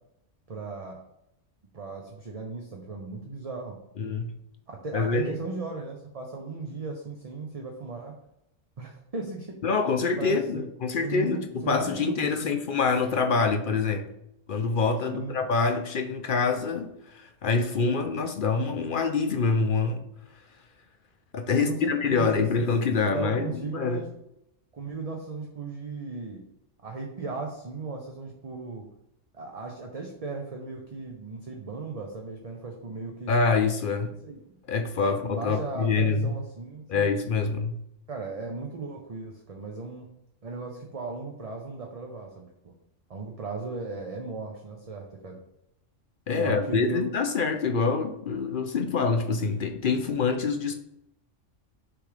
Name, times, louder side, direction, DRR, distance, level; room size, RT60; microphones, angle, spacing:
voice 1, 0.5-1.0 1.7-3.8 4.7-8.2 8.8-9.6 10.2-10.6 11.0-12.5 15.0-15.4 21.5-22.5 23.1-24.1 24.7-26.4 26.8-28.9 29.3-33.3 34.2-34.6 35.0-37.1 38.1-40.1 40.4-42.5 43.1-45.4 46.3-47.1, right 4 dB, 35° right, 1 dB, 0.8 m, -36 dB
voice 2, 4.0-4.3 4.9-5.3 9.6-14.1 14.5-20.0 21.3-24.0 33.3-34.1 34.7-36.3 36.9-37.8 46.3-50.7, left 4 dB, 55° left, 6 dB, 0.7 m, -26 dB
6.7 x 3.5 x 4.9 m, 0.79 s
omnidirectional pair, 1.3 m